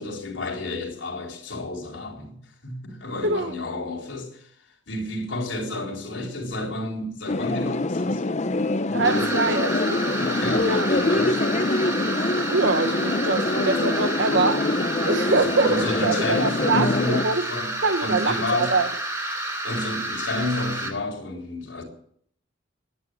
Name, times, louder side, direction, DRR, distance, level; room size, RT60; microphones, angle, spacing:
voice 1, 0.0-4.5 4.9-8.2 8.9-9.4 10.2-11.4 15.2-17.7 18.0-18.7 19.6-21.8, left 2 dB, 70° left, 3.9 m, -31 dB
voice 2, 3.2-3.5 8.9-10.1 10.6-10.9 12.5-17.4 17.8-18.9, right 3 dB, 65° right, 1.1 m, -24 dB
sound 1, 7.3-17.2, left 2 dB, 35° left, 0.7 m, -25 dB
sound 2, 9.0-20.9, right 1 dB, 15° right, 2.7 m, -30 dB
11.5 x 10.5 x 8.1 m
head